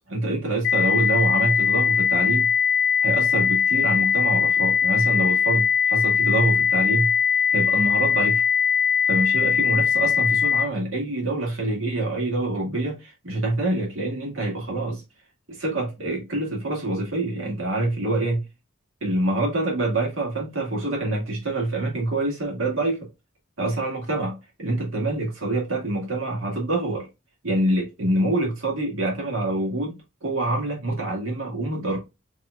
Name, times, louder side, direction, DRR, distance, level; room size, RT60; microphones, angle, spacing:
voice 1, 0.1-2.5 3.0-7.1 7.5-8.4 9.1-15.0 15.5-18.4 19.0-23.0 23.6-27.1 27.4-32.0, right 2 dB, 80° right, 1.8 m, -26 dB
sound 1, 0.6-10.6, left 8 dB, 55° left, 0.4 m, -21 dB
5.7 x 3.0 x 2.2 m
head